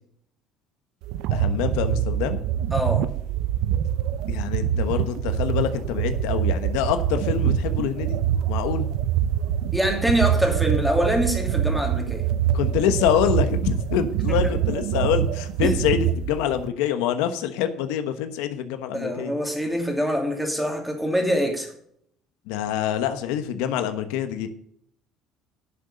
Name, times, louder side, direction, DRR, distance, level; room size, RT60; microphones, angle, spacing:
sound 1, 1.0-16.7, right 10 dB, 75° right, 0.6 m, -25 dB
voice 1, 1.3-2.4 4.3-8.2 8.5-8.9 12.5-19.3 22.5-24.5, left 9 dB, 90° left, 8 dB, 1.1 m, -25 dB
voice 2, 2.7-3.1 9.7-12.2 14.3-14.5 15.6-15.7 18.9-21.7, equal, ahead, 2 dB, 2.7 m, -24 dB
11.0 x 6.7 x 6.3 m, 0.68 s
cardioid pair, 120°, 0 cm